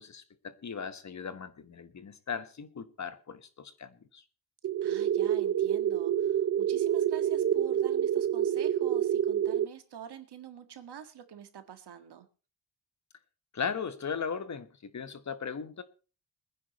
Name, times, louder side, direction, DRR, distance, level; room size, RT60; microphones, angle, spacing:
voice 1, 0.0-4.2 13.5-15.8, left 6 dB, 40° left, 1.2 m, -38 dB
sound 1, 4.6-9.7, right 10 dB, 40° right, 0.5 m, -27 dB
voice 2, 4.8-12.3, right 9 dB, 70° right, 1.8 m, -47 dB
23.0 x 10.0 x 3.0 m
cardioid pair, 105°, 42 cm